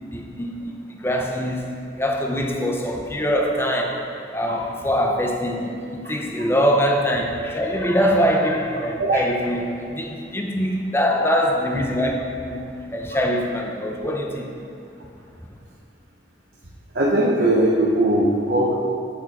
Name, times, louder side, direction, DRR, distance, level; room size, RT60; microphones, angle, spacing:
voice 1, 0.1-1.7 2.0-4.1 4.3-14.5, equal, 15° left, 1 dB, 0.7 m, -23 dB
voice 2, 16.9-18.7, right 1 dB, 65° right, -5 dB, 0.9 m, -19 dB
8.7 x 6.5 x 4.1 m, 2.5 s
head